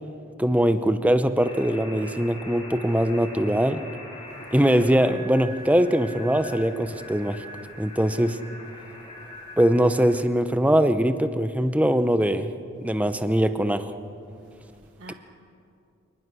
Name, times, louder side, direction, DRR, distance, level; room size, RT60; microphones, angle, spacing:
voice 1, 0.4-3.8 4.5-7.4 7.8-8.4 9.6-12.5 12.8-13.9 15.1-15.2, equal, 5° right, 10 dB, 0.7 m, -22 dB
sound 1, 1.4-10.2, left 1 dB, 30° left, 4.6 m, -42 dB
voice 2, 8.8-9.6 14.4-15.1, right 2 dB, 75° right, 2 dB, 1.3 m, -52 dB
27.5 x 19.5 x 6.3 m, 2.5 s
head